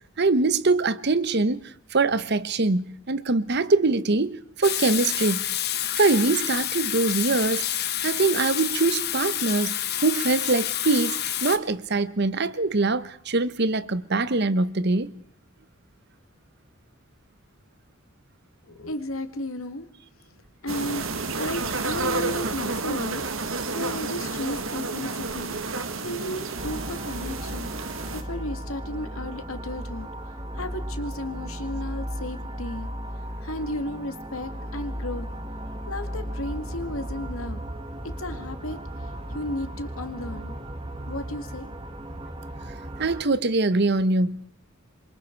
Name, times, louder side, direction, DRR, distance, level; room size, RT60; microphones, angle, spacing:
voice 1, 0.2-5.5 6.0-7.7 8.0-9.7 10.0-15.1 43.0-44.5, right 3 dB, 50° right, 0.9 m, -23 dB
Water tap faucet / Sink (filling or washing), 4.6-11.6, left 11 dB, 50° left, 1.5 m, -28 dB
voice 2, 18.6-19.9 20.6-21.0 21.4-23.2 23.7-25.5 26.0-27.7 28.1-32.9 33.4-35.3 35.9-37.6 38.0-40.6 41.1-41.7, left 1 dB, 80° left, 2.1 m, -34 dB
sound 1, 20.7-28.2, right 3 dB, 70° right, 1.8 m, -30 dB
sound 2, 26.6-43.2, equal, 25° right, 1.6 m, -35 dB
27.5 x 24.0 x 4.6 m
head